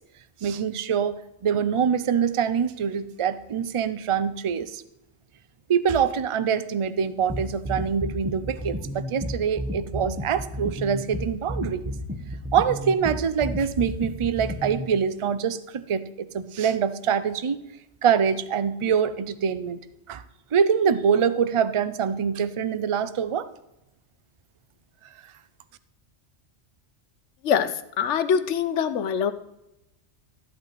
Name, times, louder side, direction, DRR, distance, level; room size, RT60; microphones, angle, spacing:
voice 1, 0.4-4.8 5.7-11.9 12.5-17.6 18.0-19.8 20.1-20.2 20.5-23.5, right 7 dB, 45° right, 14 dB, 0.4 m, -24 dB
sound 1, 7.3-14.9, equal, 10° right, 1.1 m, -31 dB
voice 2, 28.0-29.3, left 7 dB, 80° left, 11 dB, 1.0 m, -23 dB
13.5 x 8.8 x 4.1 m, 0.89 s
omnidirectional pair, 1.2 m